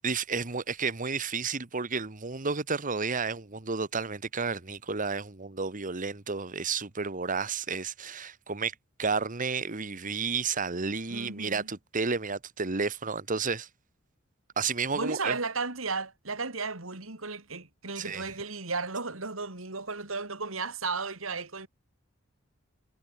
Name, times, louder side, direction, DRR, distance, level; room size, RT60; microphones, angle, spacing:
voice 1, 0.0-8.7 9.0-13.7 14.6-15.3 18.0-18.2, right 5 dB, 40° right, 1.5 m, -31 dB
voice 2, 11.1-11.7 14.9-21.7, right 4 dB, 85° right, 3.6 m, -34 dB
head